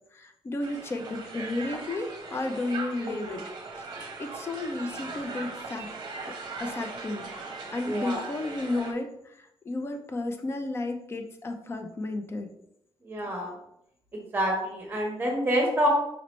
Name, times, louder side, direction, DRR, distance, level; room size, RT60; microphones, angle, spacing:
voice 1, 0.1-3.4 3.9-5.9 6.6-7.4 7.7-12.5, left 2 dB, 25° left, 6 dB, 0.5 m, -33 dB
Crowd, 0.6-8.9, right 3 dB, 50° right, 0.8 m, -39 dB
voice 2, 3.0-3.4 7.9-8.2 13.0-13.5 14.1-15.9, equal, 20° right, -1 dB, 1.1 m, -28 dB
5.1 x 2.9 x 3.1 m, 0.79 s
wide cardioid pair, 165°, 10 cm